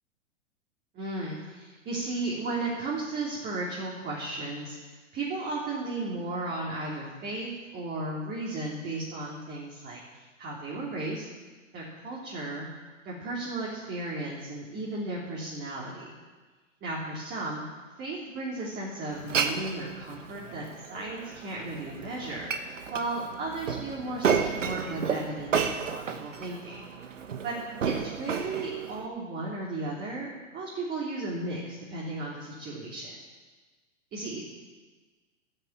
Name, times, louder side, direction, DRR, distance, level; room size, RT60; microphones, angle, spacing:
voice 1, 0.9-11.2 11.7-12.7 13.0-16.2 16.8-17.6 18.0-20.6 20.9-26.8 27.4-27.5 28.1-33.1 34.1-34.4, right 2 dB, 25° right, -5 dB, 3.4 m, -35 dB
Glass, 19.1-29.1, right 6 dB, 75° right, 1.4 m, -32 dB
12.5 x 10.0 x 8.8 m, 1.3 s
hypercardioid pair, 110°, 38 cm